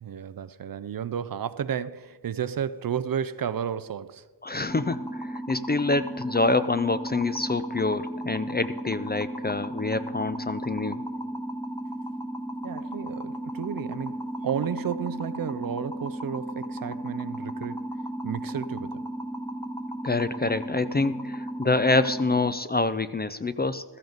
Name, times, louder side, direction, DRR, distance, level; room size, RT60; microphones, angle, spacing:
voice 1, 0.0-4.2 12.6-17.8 18.2-19.1, right 8 dB, 50° right, 0.5 m, -32 dB
voice 2, 4.4-11.0 20.0-23.8, left 3 dB, 25° left, 0.4 m, -26 dB
sound 1, 4.7-22.5, right 1 dB, 5° left, 1.0 m, -35 dB
15.5 x 13.5 x 4.0 m
wide cardioid pair, 100°, 44 cm